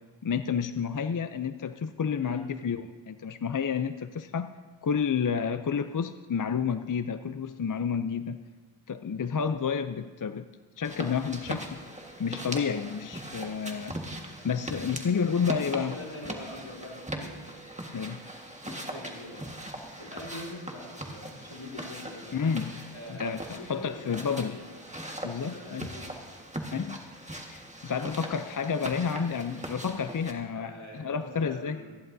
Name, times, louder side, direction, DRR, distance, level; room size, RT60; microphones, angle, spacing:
voice 1, 0.2-4.5 4.8-8.4 8.9-10.5 10.8-11.8 12.2-14.0 14.4-15.9 17.9-18.2 22.3-22.8 23.1-24.6 25.2-25.9 26.7-27.0 27.5-31.8, left 6 dB, 45° left, 10 dB, 0.5 m, -30 dB
voice 2, 2.1-2.5 15.6-17.3 18.6-19.5 20.0-22.4 22.9-24.7 25.2-26.1 29.1-29.3 30.5-32.0, left 1 dB, 75° left, -4 dB, 3.4 m, -44 dB
sound 1, 10.8-30.3, right 1 dB, 15° right, 1.5 m, -40 dB
27.0 x 11.0 x 2.7 m, 1.4 s
wide cardioid pair, 45°, 48 cm